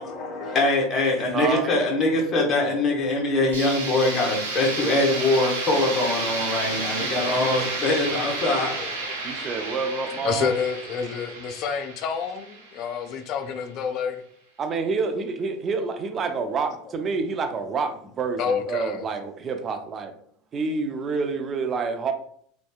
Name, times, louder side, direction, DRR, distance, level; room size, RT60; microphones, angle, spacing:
voice 1, 0.0-8.8, left 2 dB, 30° left, -1 dB, 0.8 m, -23 dB
voice 2, 1.3-1.7 7.0-7.5 9.2-10.5 14.6-20.1 20.5-22.1, right 4 dB, 35° right, 6 dB, 0.4 m, -28 dB
sound 1, 3.5-13.3, right 3 dB, 80° right, 0.9 m, -31 dB
voice 3, 4.3-4.8 7.1-7.2 8.8-9.1 10.2-14.2 18.4-19.0, left 6 dB, 50° left, 6 dB, 0.3 m, -29 dB
2.7 x 2.1 x 2.3 m, 0.62 s
hypercardioid pair, 85°, 0 cm